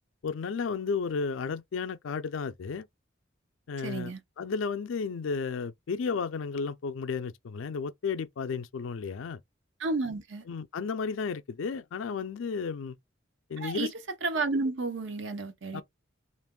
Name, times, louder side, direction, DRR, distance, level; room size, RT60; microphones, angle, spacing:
voice 1, 0.2-2.9 3.7-4.1 4.4-9.4 10.5-13.0 13.5-13.9 15.7-15.8, left 5 dB, 75° left, 0.4 m, -33 dB
voice 2, 3.8-4.2 9.8-10.4 13.6-13.9 14.2-15.8, right 3 dB, 65° right, 0.6 m, -31 dB
2.8 x 2.5 x 3.6 m
head